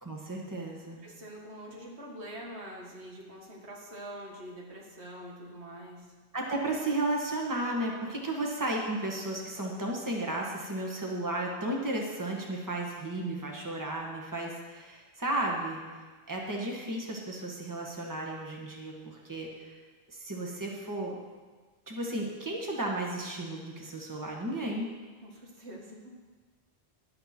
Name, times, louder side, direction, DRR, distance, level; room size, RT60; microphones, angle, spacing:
voice 1, 0.0-1.0 6.3-15.8 16.3-19.7 20.1-21.2 21.9-24.9, right 1 dB, 20° right, -1 dB, 1.6 m, -34 dB
voice 2, 1.0-6.1 25.2-26.2, right 1 dB, 85° right, -2 dB, 2.2 m, -45 dB
11.0 x 8.8 x 6.0 m, 1.4 s
omnidirectional pair, 1.1 m